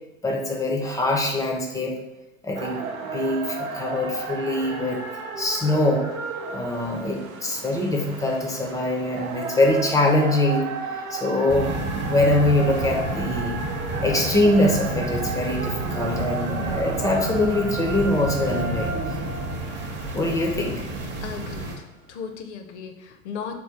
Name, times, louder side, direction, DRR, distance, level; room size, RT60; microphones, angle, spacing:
voice 1, 0.2-2.0 2.4-2.8 3.1-5.0 5.4-6.0 6.5-10.7 11.1-13.6 14.0-19.1 20.1-20.8, left 1 dB, 10° left, 0 dB, 0.5 m, -23 dB
sound 1, 2.5-21.4 22.0-22.1, right 4 dB, 85° right, 0.6 m, -34 dB
sound 2, 11.5-21.8, right 2 dB, 25° right, 0.7 m, -30 dB
voice 2, 21.2-23.6, left 6 dB, 55° left, 6 dB, 0.7 m, -36 dB
3.7 x 2.2 x 4.3 m, 1.0 s
figure-of-eight pair, 90°, 41 cm